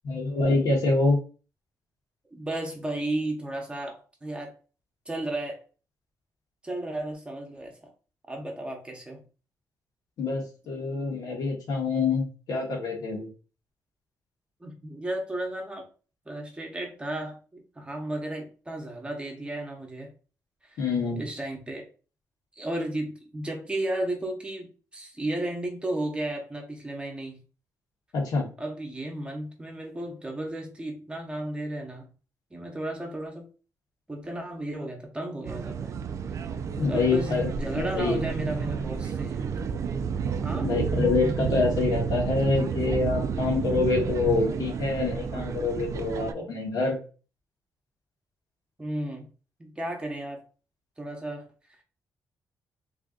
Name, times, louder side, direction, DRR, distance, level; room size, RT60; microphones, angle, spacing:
voice 1, 0.0-1.2 10.2-13.3 20.8-21.2 28.1-28.5 36.8-38.2 40.6-47.0, left 3 dB, 85° left, -1 dB, 1.5 m, -26 dB
voice 2, 2.3-4.5 5.1-5.6 6.6-7.9 8.3-9.2 14.6-15.9 16.3-20.1 20.7-20.8 21.2-21.9 22.6-24.7 24.9-27.4 28.6-32.1 32.5-33.5 34.1-35.9 36.9-39.4 40.4-40.7 48.8-49.3 49.6-50.4 51.0-51.4, right 1 dB, 15° right, 2 dB, 0.9 m, -34 dB
sound 1, 35.5-46.3, right 6 dB, 55° right, 0.3 m, -30 dB
3.3 x 2.6 x 3.7 m, 0.35 s
cardioid pair, 130°, 6 cm